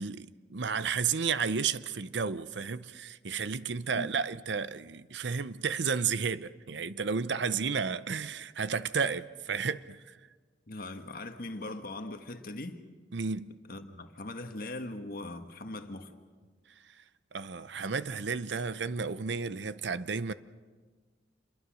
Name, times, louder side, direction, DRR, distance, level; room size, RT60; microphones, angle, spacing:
voice 1, 0.0-10.2 13.1-13.5 17.3-20.3, right 5 dB, 75° right, 0.7 m, -32 dB
voice 2, 10.7-12.9 13.7-16.1, left 2 dB, 55° left, 1.6 m, -40 dB
27.5 x 22.0 x 6.3 m
head